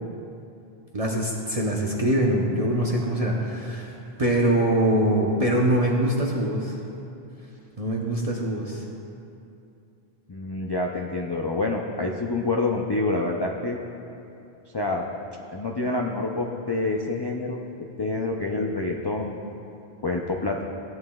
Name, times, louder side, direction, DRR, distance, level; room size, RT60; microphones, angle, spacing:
voice 1, 0.9-6.8 7.8-8.8, right 1 dB, 40° right, -2 dB, 0.8 m, -23 dB
voice 2, 10.3-13.8 14.7-15.0 15.5-17.6 18.0-19.4 20.0-20.6, left 2 dB, 35° left, 0 dB, 0.4 m, -27 dB
16.0 x 8.9 x 2.3 m, 2.7 s
omnidirectional pair, 1.1 m